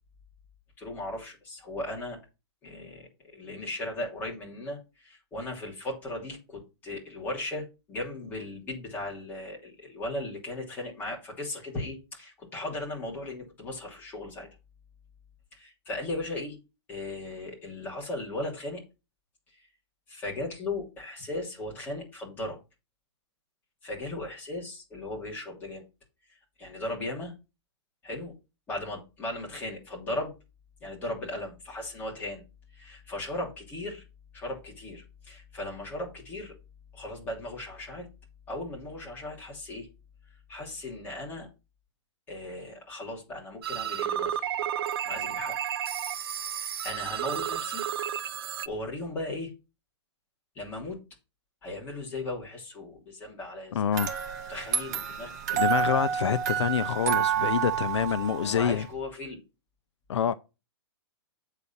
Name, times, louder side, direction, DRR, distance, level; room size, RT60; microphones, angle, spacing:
voice 1, 0.8-2.2 2.6-14.5 15.5-16.6 16.9-18.8 19.6-19.7 20.1-22.6 23.8-25.8 26.6-27.3 28.0-28.3 28.7-30.3 30.8-32.4 32.7-34.0 34.3-36.5 36.9-38.1 38.5-39.9 40.5-41.5 42.3-44.5 45.0-45.6 46.8-47.8 48.6-49.5 50.5-51.0 51.6-53.8 54.5-55.6 55.8-55.9 58.4-59.4, left 2 dB, 10° left, 3.0 m, -37 dB
sound 1, 43.6-48.7, right 10 dB, 55° right, 0.7 m, -32 dB
voice 2, 53.7-54.2 55.5-58.9 60.1-60.3, left 8 dB, 75° left, 0.6 m, -27 dB
sound 2, 53.9-58.9, right 8 dB, 40° right, 1.6 m, -29 dB
8.3 x 4.1 x 7.1 m
hypercardioid pair, 165°, 15 cm